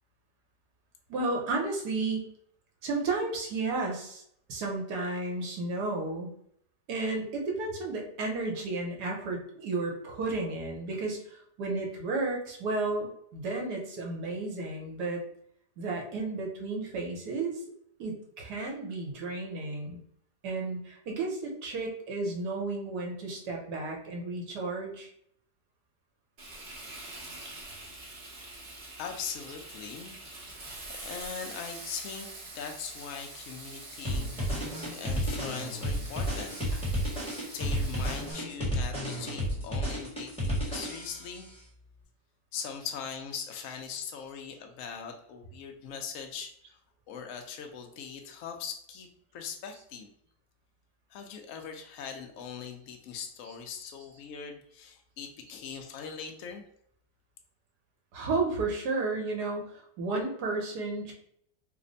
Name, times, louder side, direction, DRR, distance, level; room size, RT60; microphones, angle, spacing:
voice 1, 1.1-2.2 2.8-4.2 4.5-6.3 6.9-15.2 15.8-17.6 18.0-20.0 20.4-25.1 58.1-61.1, right 3 dB, 70° right, 0 dB, 1.3 m, -33 dB
Frying (food), 26.4-38.3, right 2 dB, 45° right, 0.8 m, -45 dB
voice 2, 29.0-32.3 32.5-36.6 37.5-41.5 42.5-46.8 47.1-49.1 49.3-50.1 51.1-56.6, left 7 dB, 70° left, 4 dB, 0.8 m, -41 dB
sound 1, 34.0-41.4, equal, 5° left, 0.9 m, -32 dB
3.3 x 2.1 x 3.9 m, 0.68 s
omnidirectional pair, 1.9 m